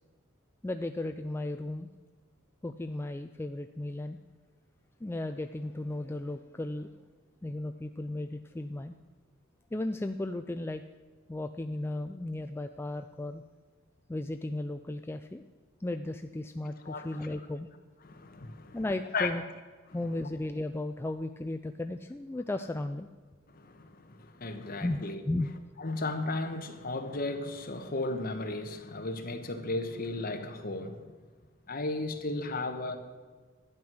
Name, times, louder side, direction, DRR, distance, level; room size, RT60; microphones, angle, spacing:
voice 1, 0.6-1.9 2.6-4.2 5.0-6.9 7.4-9.0 9.7-10.8 11.3-13.4 14.1-15.4 15.8-17.7 18.7-19.4 19.9-23.1 24.8-25.5, left 1 dB, 10° left, 0.3 m, -35 dB
voice 2, 16.8-17.4 18.0-18.8 19.1-19.3 19.9-20.0 23.5-25.2 25.8-31.1 31.7-33.0, left 2 dB, 45° left, 1.2 m, -35 dB
12.0 x 9.4 x 6.2 m
head